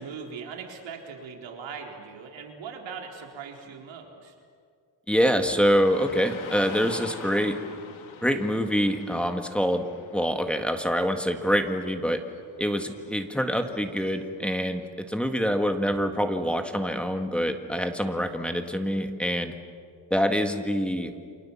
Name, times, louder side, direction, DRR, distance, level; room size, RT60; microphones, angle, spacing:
voice 1, 0.0-4.3, right 5 dB, 75° right, 1 dB, 4.0 m, -40 dB
voice 2, 5.1-7.6 8.2-9.9 10.1-12.2 12.6-19.5 20.1-21.1, equal, ahead, 5 dB, 1.8 m, -25 dB
Car passing by / Traffic noise roadway noise, 5.8-14.9, left 6 dB, 85° left, 2.9 m, -46 dB
30.0 x 26.5 x 7.3 m, 2.1 s
cardioid pair, 140°, 46 cm